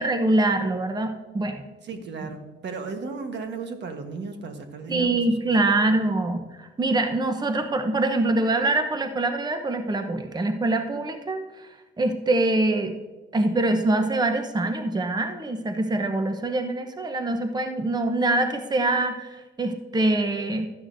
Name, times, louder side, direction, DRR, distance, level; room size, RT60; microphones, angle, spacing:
voice 1, 0.0-1.6 4.9-11.7 12.0-12.9 13.3-20.7, right 2 dB, 20° right, 7 dB, 0.9 m, -24 dB
voice 2, 1.8-5.3 5.8-6.0, right 4 dB, 65° right, 6 dB, 1.4 m, -35 dB
13.0 x 9.7 x 2.7 m, 1.2 s
cardioid pair, 90°, 20 cm